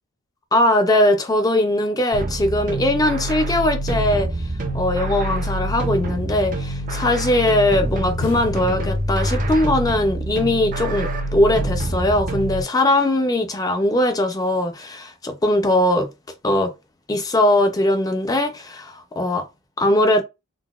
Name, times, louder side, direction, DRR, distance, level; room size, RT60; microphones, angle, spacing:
voice 1, 0.5-4.3 4.7-16.1 16.4-16.7 17.1-19.4 19.8-20.2, left 1 dB, 15° left, 0.4 m, -20 dB
sound 1, 2.1-12.6, right 1 dB, 35° right, 0.5 m, -26 dB
sound 2, 5.2-6.9 8.2-9.7 10.0-10.1, left 4 dB, 70° left, 0.5 m, -38 dB
3.8 x 2.1 x 2.3 m
head